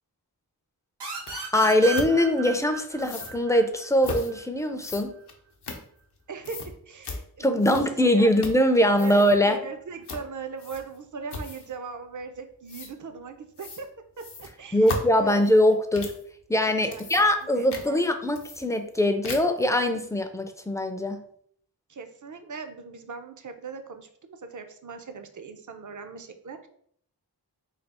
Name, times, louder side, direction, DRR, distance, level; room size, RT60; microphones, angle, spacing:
sound 1, 1.0-4.4, right 6 dB, 85° right, 1.3 m, -35 dB
sound 2, 1.3-1.4 1.9-2.1 3.0-3.4 4.0-4.3 4.8-6.2 6.4-6.7 7.0-7.2 7.6-8.0 8.4-8.7 8.9-9.4 10.1-10.3 10.6-11.0 11.3-11.7 12.7-12.9 13.6-13.9 14.2-16.2 16.7-17.4 17.7-17.9 18.4-19.0 19.2-19.6, left 3 dB, 80° left, 0.7 m, -37 dB
voice 1, 1.5-5.1 7.4-9.6 14.7-16.1 16.5-21.2, left 1 dB, 10° left, 7 dB, 0.4 m, -22 dB
voice 2, 6.3-8.3 8.9-13.9 14.2-15.4 16.7-17.0 17.6-18.0 21.9-26.7, right 5 dB, 50° right, 7 dB, 0.5 m, -39 dB
3.3 x 2.3 x 4.2 m, 0.63 s
wide cardioid pair, 70°, 40 cm